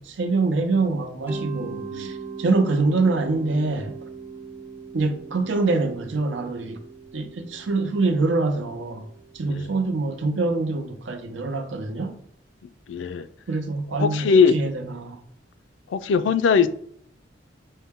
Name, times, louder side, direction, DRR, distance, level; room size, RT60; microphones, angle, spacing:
voice 1, 0.0-3.9 4.9-6.8 7.1-9.1 9.3-12.1 13.5-15.2, right 3 dB, 90° right, 0.6 m, -25 dB
Mallet percussion, 1.3-10.0, right 5 dB, 10° right, 0.4 m, -40 dB
voice 2, 1.6-2.2 9.4-9.7 12.9-13.3 14.0-14.6 15.9-16.7, left 6 dB, 85° left, 0.4 m, -21 dB
5.4 x 2.1 x 3.5 m
head